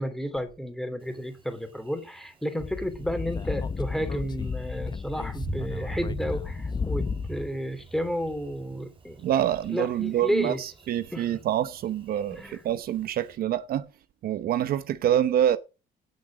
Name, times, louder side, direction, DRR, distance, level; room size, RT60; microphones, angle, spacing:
voice 1, 0.0-9.3 9.7-10.6 11.1-11.5 12.3-12.6, equal, ahead, 3.1 m, -32 dB
Thunder, 1.0-13.4, right 4 dB, 30° right, 3.3 m, -45 dB
Speech / Wind, 2.6-7.5, left 5 dB, 25° left, 0.8 m, -33 dB
voice 2, 9.2-13.9 14.2-15.6, right 11 dB, 60° right, 0.9 m, -26 dB
17.0 x 6.4 x 6.3 m
cardioid pair, 110°, 17 cm